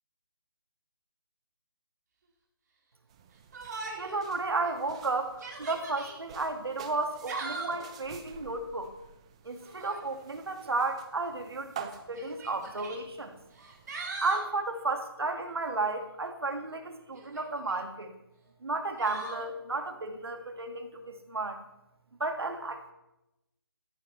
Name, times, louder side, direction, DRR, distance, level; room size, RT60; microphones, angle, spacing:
sound 1, 3.1-14.3, right 8 dB, 15° right, 0.5 m, -49 dB
Yell, 3.5-4.2 4.6-4.7 5.3-6.2 7.0-7.9 9.6-10.1 11.2-11.3 12.2-13.0 13.5-14.5 17.1-17.8 19.0-19.5, right 3 dB, 45° right, 2.6 m, -40 dB
voice 1, 4.0-8.9 9.4-13.4 14.2-18.1 18.6-21.6 22.2-22.9, right 3 dB, 80° right, 5 dB, 1.9 m, -33 dB
15.5 x 13.5 x 3.2 m, 0.91 s
figure-of-eight pair, 165°, 13 cm